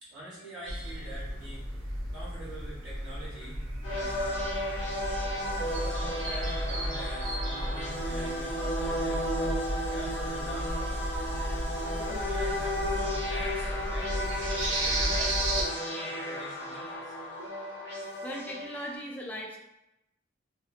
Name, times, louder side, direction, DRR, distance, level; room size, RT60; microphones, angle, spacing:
voice 1, 0.0-3.6 3.9-4.5 5.7-11.2 11.7-17.1, right 1 dB, 60° right, -8 dB, 1.3 m, -45 dB
sound 1, 0.7-15.6, right 1 dB, 90° right, 0.5 m, -34 dB
sound 2, 3.8-18.9, equal, 25° left, 0.8 m, -34 dB
voice 2, 17.9-19.6, equal, 10° left, -2 dB, 0.3 m, -39 dB
2.6 x 2.5 x 2.4 m, 0.90 s
head